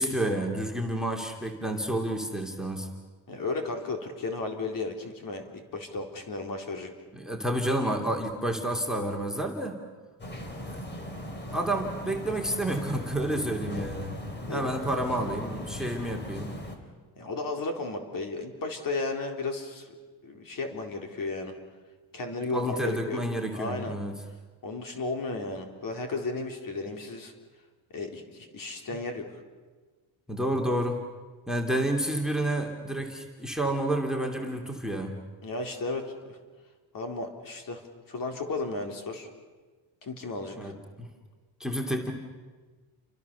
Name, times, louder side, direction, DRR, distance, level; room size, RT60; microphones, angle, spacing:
voice 1, 0.0-2.9 7.1-9.8 10.7-10.8 11.5-14.2 14.5-16.5 22.5-24.2 30.3-31.0 31.5-35.2 40.6-41.1 41.6-42.1, right 1 dB, ahead, 3 dB, 2.6 m, -30 dB
voice 2, 3.3-6.9 14.5-15.1 17.2-19.9 20.2-21.5 22.1-23.2 23.5-23.9 24.6-27.3 27.9-29.4 35.4-36.4 36.9-37.8 38.1-39.3 40.0-40.7, left 3 dB, 45° left, 4 dB, 3.9 m, -34 dB
sound 1, 10.2-16.8, left 1 dB, 20° left, 3.9 m, -38 dB
29.5 x 24.5 x 6.9 m, 1.4 s
cardioid pair, 135°, 48 cm